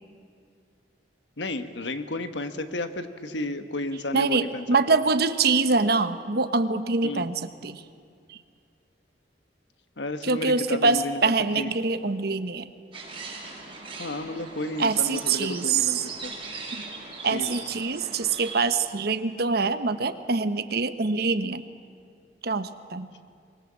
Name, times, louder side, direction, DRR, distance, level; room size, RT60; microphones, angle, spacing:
voice 1, 1.4-4.7 4.9-5.0 7.0-7.3 10.0-11.7 14.0-16.3 17.3-17.5, left 2 dB, 80° left, 9 dB, 1.3 m, -32 dB
voice 2, 4.1-7.8 8.3-8.4 10.2-12.7 14.8-16.0 16.7-16.8 17.2-21.6 22.4-23.1, right 4 dB, 60° right, 11 dB, 1.0 m, -24 dB
sound 1, 12.9-18.6, right 3 dB, 30° right, 5.8 m, -39 dB
24.5 x 21.0 x 7.5 m, 2.3 s
head